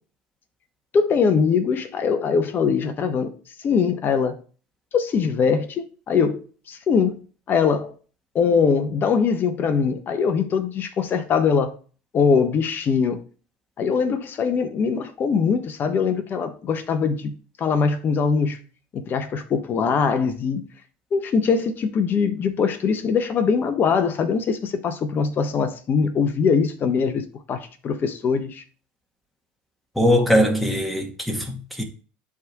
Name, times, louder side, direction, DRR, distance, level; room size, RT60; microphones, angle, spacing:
voice 1, 0.9-3.3 3.6-4.4 4.9-7.2 7.5-7.9 8.3-11.8 12.1-13.2 13.8-18.6 18.9-20.6 21.1-28.6, left 5 dB, 45° left, 1.2 m, -22 dB
voice 2, 30.0-31.8, equal, ahead, 1.9 m, -21 dB
11.0 x 3.8 x 3.0 m
hypercardioid pair, 80°, 5 cm